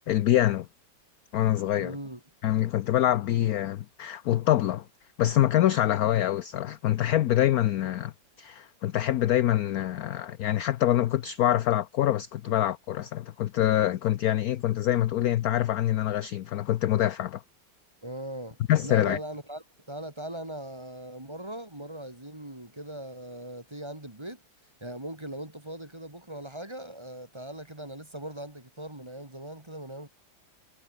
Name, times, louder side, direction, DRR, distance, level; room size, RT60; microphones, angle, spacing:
voice 1, 0.1-0.7 1.3-2.0 2.4-4.8 5.2-8.1 8.4-17.4 18.7-19.2, left 13 dB, 65° left, 0.9 m, -25 dB
voice 2, 1.8-2.2 18.0-24.4 24.8-30.1, right 1 dB, 15° right, 2.5 m, -40 dB
omnidirectional pair, 2.0 m